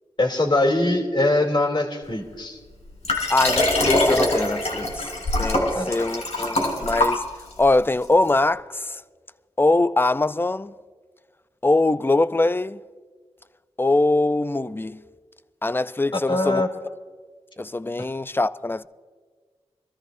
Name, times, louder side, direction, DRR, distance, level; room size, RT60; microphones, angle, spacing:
voice 1, 0.2-2.6 5.7-5.9 16.3-16.7, left 2 dB, 45° left, 2.7 m, -22 dB
Liquid, 3.0-7.6 8.3-8.4, left 1 dB, 75° left, 4.1 m, -23 dB
voice 2, 3.3-5.0 5.4-7.3 7.6-9.0 9.6-10.7 11.6-12.8 13.8-15.0 15.6-16.6 17.6-18.8, left 2 dB, 20° left, 0.4 m, -22 dB
24.5 x 13.5 x 2.6 m
cardioid pair, 45°, 11 cm